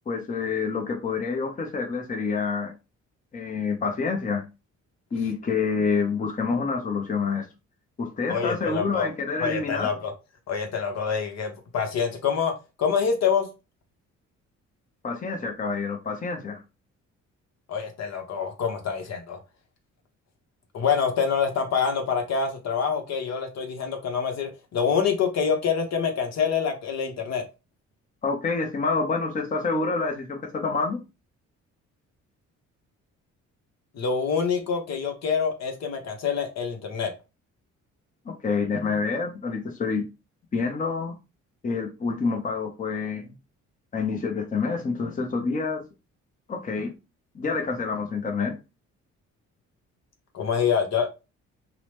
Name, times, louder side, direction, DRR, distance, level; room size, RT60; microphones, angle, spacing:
voice 1, 0.1-2.7 3.3-4.4 5.1-7.5 8.0-9.9 15.0-16.6 28.2-31.0 38.3-40.0 40.5-41.2 41.6-43.3 43.9-45.8 46.5-46.9 47.3-48.6, left 4 dB, 25° left, 0.6 m, -27 dB
voice 2, 8.3-9.1 9.4-10.1 10.5-12.5 12.8-13.5 17.7-19.4 20.7-27.4 33.9-37.1 50.3-51.1, left 6 dB, 60° left, 0.8 m, -26 dB
2.9 x 2.0 x 3.2 m
cardioid pair, 90°, 30 cm